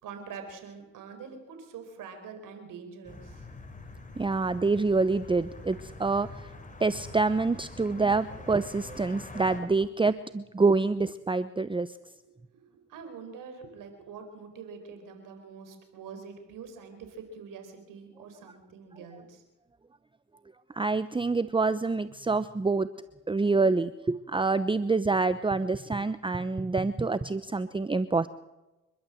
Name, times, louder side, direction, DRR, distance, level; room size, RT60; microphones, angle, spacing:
voice 1, 0.0-3.5 12.3-12.6 12.9-19.4, right 5 dB, 80° right, 7 dB, 4.6 m, -45 dB
sound 1, 3.0-9.6, left 2 dB, 25° left, 4.9 m, -45 dB
voice 2, 4.2-6.3 6.8-11.9 20.7-22.9 23.3-28.3, right 3 dB, 15° right, 14 dB, 0.8 m, -26 dB
27.5 x 12.0 x 7.8 m, 1.0 s
supercardioid pair, 65°, 32 cm